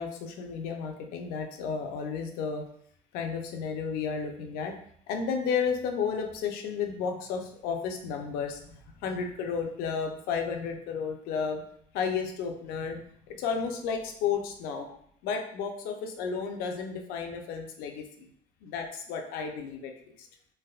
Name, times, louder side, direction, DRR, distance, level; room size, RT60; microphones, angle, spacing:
voice 1, 0.0-2.6 3.1-4.8 5.1-11.6 11.9-13.0 13.3-15.0 15.2-18.3 18.6-19.9 20.2-20.3, left 6 dB, 80° left, 4 dB, 0.5 m, -32 dB
3.4 x 2.6 x 2.3 m, 0.64 s
cardioid pair, 135°, 15 cm